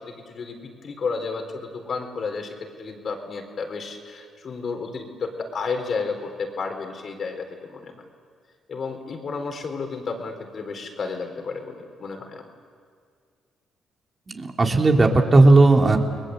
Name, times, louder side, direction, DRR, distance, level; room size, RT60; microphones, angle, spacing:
voice 1, 0.0-7.9 8.7-12.4, left 4 dB, 50° left, 4 dB, 4.2 m, -32 dB
voice 2, 14.3-16.0, right 2 dB, 30° right, 3 dB, 2.8 m, -15 dB
29.5 x 21.0 x 7.9 m, 2.1 s
cardioid pair, 90°, 0 cm